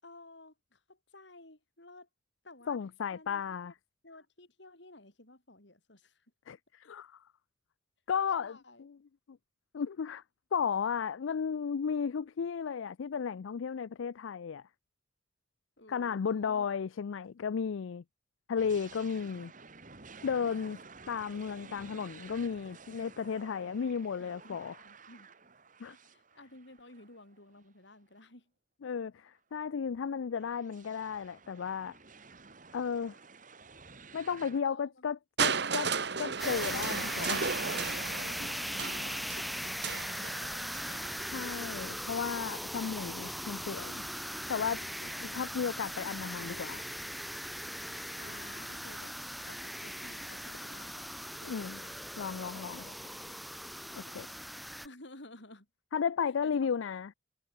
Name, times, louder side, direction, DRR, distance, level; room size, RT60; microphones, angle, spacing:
voice 1, 0.0-2.1 2.4-2.8 3.1-3.7 4.0-6.2 8.2-8.9 15.8-16.7 21.5-21.9 24.2-25.3 25.9-28.5 34.6-35.1 37.0-37.4 37.8-40.5 42.8-43.4 45.0-45.4 46.2-46.7 48.2-51.1 51.4-52.0 52.5-53.4 54.8-55.7 56.3-56.7, left 2 dB, 65° left, 4.6 m, -54 dB
voice 2, 2.7-3.7 6.5-7.2 8.1-8.9 9.3-9.4 9.7-10.2 10.5-14.6 15.9-18.0 18.5-19.5 20.2-20.8 21.1-24.8 25.8-25.9 28.8-32.0 32.7-33.2 34.1-35.9 36.2-37.4 41.3-44.0 44.5-44.8 45.3-46.8 51.5-51.8 52.2-52.8 53.9-54.3 55.9-57.1, left 6 dB, 85° left, 0.4 m, -34 dB
sound 1, 18.6-27.6 28.2-28.3 29.7-34.6, right 4 dB, 40° right, 2.3 m, -53 dB
Crushing, 35.4-41.3 42.2-42.3, right 5 dB, 60° right, 1.6 m, -35 dB
sound 2, 36.4-54.9, equal, ahead, 0.8 m, -39 dB
head